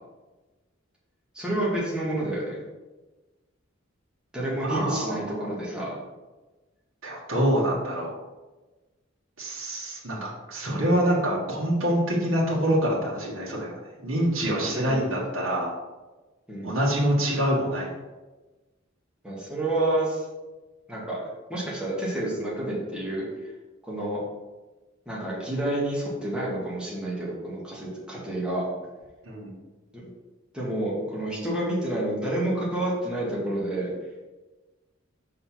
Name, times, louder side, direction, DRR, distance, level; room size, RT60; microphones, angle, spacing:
voice 1, 1.3-2.6 4.3-6.0 14.6-15.0 16.5-16.7 19.2-20.2 20.9-21.2 21.5-23.2 23.8-24.2 25.1-28.6 30.5-33.9, right 1 dB, 5° right, -7 dB, 2.0 m, -29 dB
voice 2, 4.6-5.5 7.0-8.1 9.4-15.7 16.6-17.9 29.2-29.5, equal, 80° right, -4 dB, 1.7 m, -26 dB
5.5 x 4.1 x 5.7 m, 1.2 s
head